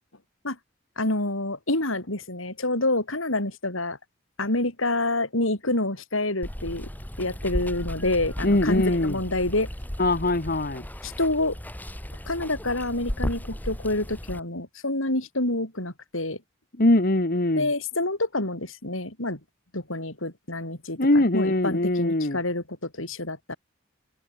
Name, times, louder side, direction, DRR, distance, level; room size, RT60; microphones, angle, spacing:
voice 1, 1.0-4.0 4.4-6.9 7.2-9.7 11.0-11.6 12.3-16.4 17.6-19.4 19.7-23.6, left 2 dB, 85° left, 7.2 m, -27 dB
Water, 6.4-14.4, equal, 10° left, 1.9 m, -35 dB
voice 2, 8.4-9.2 10.0-10.8 16.8-17.7 21.0-22.4, left 1 dB, 50° left, 1.8 m, -22 dB
head